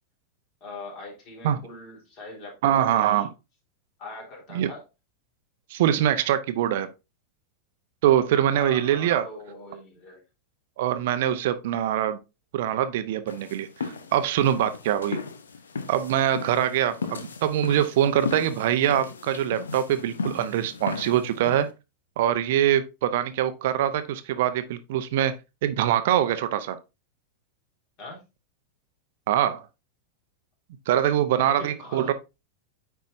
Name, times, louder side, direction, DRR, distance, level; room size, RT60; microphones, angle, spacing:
voice 1, 0.6-3.3 4.0-4.8 8.5-10.2 28.0-28.2 31.3-32.1, left 2 dB, 40° left, 3.4 m, -42 dB
voice 2, 2.6-3.3 4.5-4.7 5.7-6.9 8.0-9.3 10.8-12.2 12.5-15.2 15.9-21.7 22.2-25.3 25.6-26.8 29.3-29.6 30.9-32.1, right 11 dB, 55° right, 0.6 m, -23 dB
sound 1, 13.3-21.7, left 5 dB, 70° left, 0.7 m, -36 dB
9.1 x 4.6 x 2.5 m
figure-of-eight pair, 90°, 0 cm